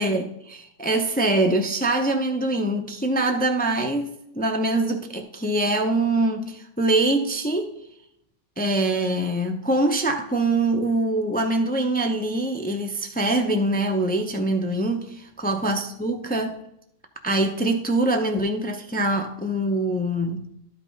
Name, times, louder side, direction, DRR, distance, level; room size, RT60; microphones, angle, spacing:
voice 1, 0.0-7.7 8.6-16.6 17.2-20.4, right 2 dB, 10° left, 0.4 m, -24 dB
12.0 x 5.3 x 3.9 m
omnidirectional pair, 1.3 m